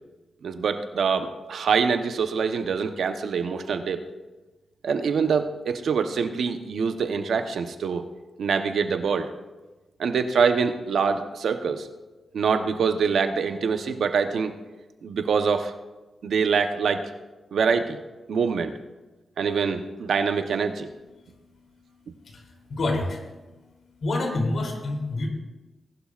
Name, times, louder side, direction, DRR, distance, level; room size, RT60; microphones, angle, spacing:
voice 1, 0.4-4.1 4.8-8.1 8.4-9.3 10.0-11.9 12.3-14.5 15.0-15.7 16.2-17.1 17.5-18.0 18.3-18.7 19.4-20.9, right 5 dB, 80° right, 7 dB, 0.9 m, -25 dB
voice 2, 22.2-23.3 24.0-25.3, left 2 dB, 70° left, 1 dB, 3.1 m, -27 dB
19.5 x 11.5 x 2.5 m, 1.1 s
cardioid pair, 85°, 0 cm